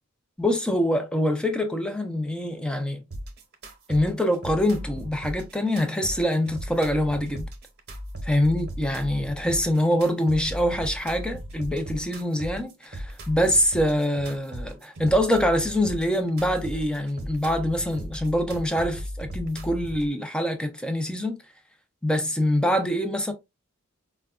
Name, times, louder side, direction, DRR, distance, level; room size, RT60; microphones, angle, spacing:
voice 1, 0.4-3.0 3.9-7.5 8.2-21.4 22.0-23.3, equal, 5° left, 0.5 m, -24 dB
sound 1, 3.1-20.1, equal, 50° right, 0.9 m, -37 dB
4.4 x 2.2 x 2.3 m
head